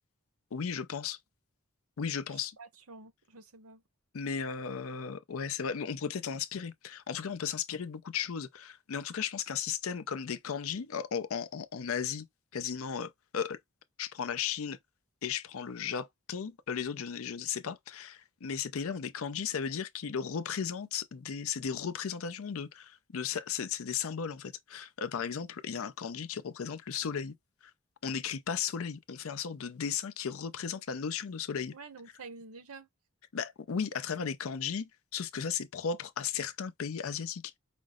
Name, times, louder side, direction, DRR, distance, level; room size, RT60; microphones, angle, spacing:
voice 1, 0.5-1.2 2.0-2.6 4.1-12.3 12.5-13.6 14.0-14.8 15.2-27.4 28.0-31.7 33.3-37.6, left 7 dB, 70° left, 0.5 m, -35 dB
voice 2, 2.3-3.8 31.7-32.9, right 4 dB, 80° right, 0.9 m, -49 dB
5.1 x 2.0 x 3.6 m
head